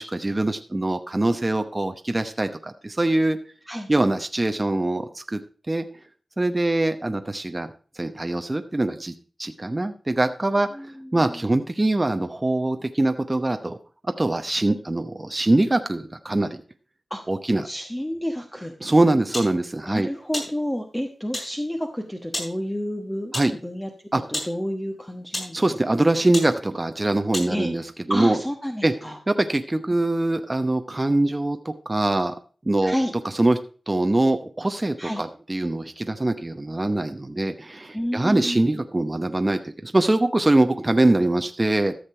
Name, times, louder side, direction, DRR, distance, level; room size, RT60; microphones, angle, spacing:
voice 1, 0.0-3.4 3.9-5.4 5.7-5.9 6.4-7.7 8.0-9.1 9.4-10.7 11.1-13.8 14.2-16.6 17.3-17.7 18.8-20.1 23.3-23.5 24.1-24.2 25.5-28.4 28.8-28.9 29.3-32.3 32.6-33.0 33.4-33.6 33.9-41.9, right 2 dB, 25° right, 7 dB, 0.8 m, -23 dB
voice 2, 10.7-11.4 17.1-17.2 17.6-18.7 19.8-23.3 23.6-23.9 24.3-25.6 27.5-27.7 28.1-29.2 32.8-33.1 35.0-35.2 37.9-38.8, equal, 10° left, 3 dB, 1.2 m, -30 dB
sound 1, 19.3-19.5 20.3-20.5 21.3-21.5 22.3-22.5 23.3-23.5 24.3-24.5 25.3-25.6 26.3-26.5 27.3-27.5, left 1 dB, 30° left, 6.4 m, -31 dB
13.5 x 6.6 x 4.3 m, 0.38 s
wide cardioid pair, 70°, 0 cm